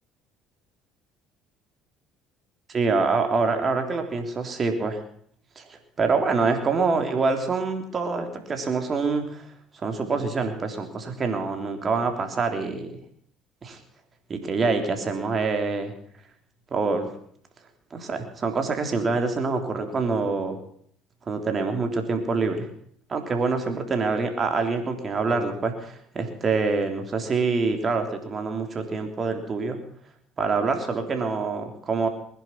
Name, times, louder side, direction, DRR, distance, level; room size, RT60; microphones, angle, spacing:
voice 1, 2.7-5.0 5.6-9.5 9.8-12.9 13.6-13.8 14.3-15.9 16.7-17.1 17.9-20.6 21.3-22.7 23.1-29.8 30.4-32.1, right 4 dB, 40° right, 5 dB, 3.5 m, -26 dB
20.5 x 11.0 x 5.9 m, 0.62 s
hypercardioid pair, 70°, 0 cm